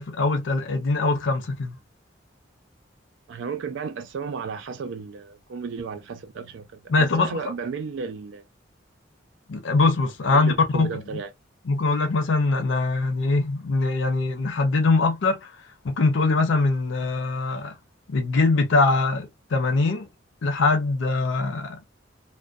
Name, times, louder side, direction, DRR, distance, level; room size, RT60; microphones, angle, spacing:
voice 1, 0.0-1.7 6.9-7.4 9.5-11.0 11.7-15.5 15.8-17.7 18.1-20.1 20.4-21.8, left 3 dB, 80° left, 0.5 m, -22 dB
voice 2, 3.3-8.4 10.3-11.3, right 5 dB, 75° right, 0.3 m, -34 dB
2.5 x 2.1 x 2.3 m
head